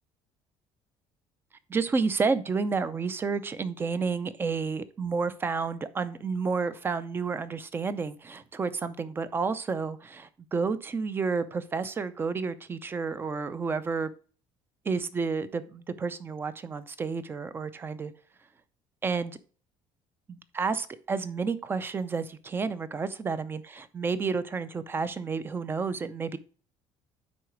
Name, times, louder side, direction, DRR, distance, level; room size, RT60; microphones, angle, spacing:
voice 1, 1.7-14.1 14.8-18.1 19.0-19.4 20.3-26.4, right 4 dB, 20° right, 0.6 m, -30 dB
9.7 x 4.1 x 4.6 m
cardioid pair, 150°, 11 cm